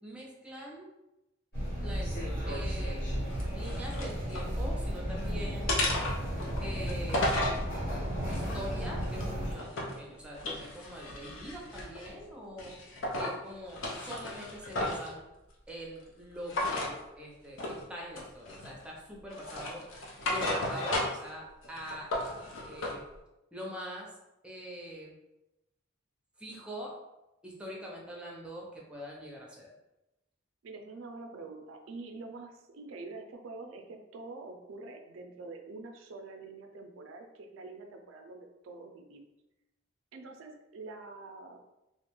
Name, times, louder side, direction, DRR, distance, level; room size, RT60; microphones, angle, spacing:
voice 1, 0.0-0.9 1.8-2.1 2.5-3.0 3.5-5.7 6.6-7.3 8.3-12.7 13.2-15.2 15.7-19.9 20.3-23.0 23.5-24.1 24.4-25.1 26.4-26.9 27.4-29.7, equal, 5° right, -3 dB, 0.5 m, -43 dB
sound 1, 1.5-9.5, equal, 55° left, 1.2 m, -34 dB
sound 2, 3.3-4.5 4.9-5.3 5.7-7.6 8.2-10.0 10.3-12.2 12.6-13.4 13.7-15.1 16.5-16.9 17.6-17.8 18.2-18.9 19.3-21.3 21.6-23.0, left 1 dB, 75° left, 0.6 m, -34 dB
voice 2, 30.6-39.2 40.1-41.6, right 3 dB, 80° right, 4 dB, 0.4 m, -46 dB
2.4 x 2.2 x 2.9 m, 0.96 s
head